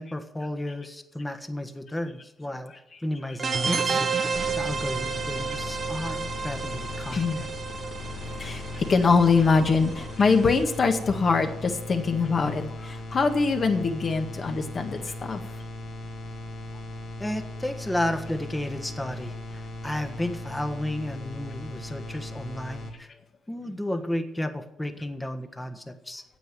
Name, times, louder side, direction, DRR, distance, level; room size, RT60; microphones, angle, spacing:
voice 1, 0.0-2.7 3.0-4.0 4.5-7.5 17.2-23.1 23.5-26.2, left 1 dB, 10° left, 7 dB, 1.4 m, -33 dB
sound 1, 3.4-10.7, right 5 dB, 45° right, 1.2 m, -31 dB
sound 2, 4.3-22.9, left 1 dB, 65° left, 3.2 m, -38 dB
voice 2, 8.4-15.4, left 4 dB, 45° left, 5 dB, 1.7 m, -23 dB
9.2 x 8.2 x 9.2 m, 0.88 s
cardioid pair, 90°, 0 cm